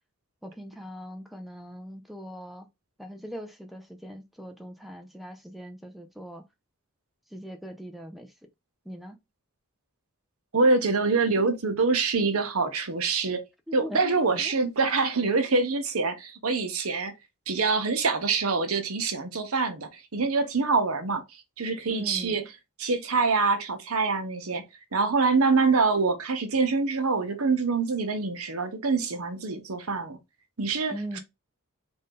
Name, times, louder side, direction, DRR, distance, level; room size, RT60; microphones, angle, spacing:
voice 1, 0.4-2.7 3.0-6.4 7.3-8.3 8.9-9.2 13.7-14.6 21.9-22.4 30.9-31.2, equal, ahead, 0.5 m, -40 dB
voice 2, 10.5-13.4 13.7-17.1 17.5-21.2 21.6-22.4 22.8-24.6 24.9-30.2 30.6-31.2, right 4 dB, 75° right, 0.9 m, -25 dB
3.8 x 2.7 x 3.7 m
head